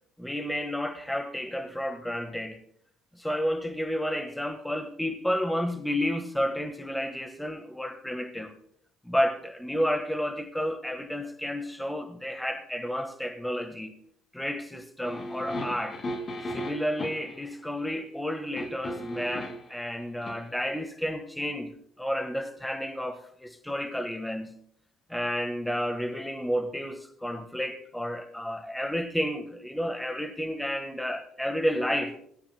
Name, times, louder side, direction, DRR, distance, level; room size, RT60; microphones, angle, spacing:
voice 1, 0.2-2.6 3.1-8.6 9.0-13.9 14.3-16.0 16.5-24.6 25.1-32.2, equal, 5° left, 1.5 m, -31 dB
sound 1, 15.0-17.4 18.6-19.7 20.2-20.4, left 1 dB, 40° left, 2.6 m, -36 dB
17.0 x 14.5 x 2.2 m
hypercardioid pair, 55°, 0 cm